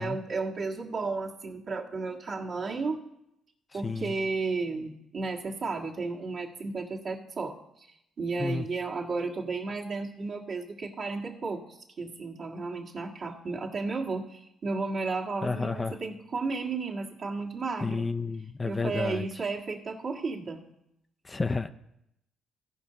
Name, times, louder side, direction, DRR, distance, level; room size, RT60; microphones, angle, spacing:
voice 1, 0.0-3.0 3.7-18.1 18.6-20.6, right 3 dB, 50° right, -2 dB, 1.6 m, -33 dB
voice 2, 3.7-4.1 8.4-8.7 15.4-16.0 17.8-19.3 21.2-21.7, left 4 dB, 20° left, 10 dB, 0.4 m, -31 dB
16.5 x 5.5 x 3.9 m, 0.82 s
cardioid pair, 100°, 0 cm